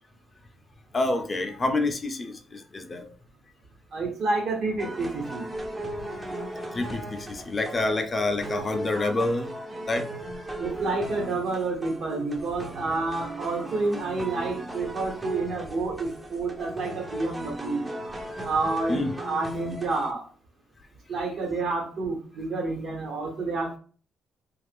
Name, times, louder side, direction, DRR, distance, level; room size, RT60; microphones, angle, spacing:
voice 1, 0.9-3.1 6.7-9.5 9.9-10.1 18.9-19.1, left 2 dB, 30° left, 5 dB, 0.5 m, -27 dB
voice 2, 3.9-5.4 10.6-17.9 18.4-20.3 21.1-23.8, right 3 dB, 65° right, 0 dB, 1.2 m, -29 dB
sound 1, 4.8-20.1, right 1 dB, 15° right, 0.6 m, -37 dB
2.8 x 2.4 x 3.5 m, 0.41 s
cardioid pair, 90°, 0 cm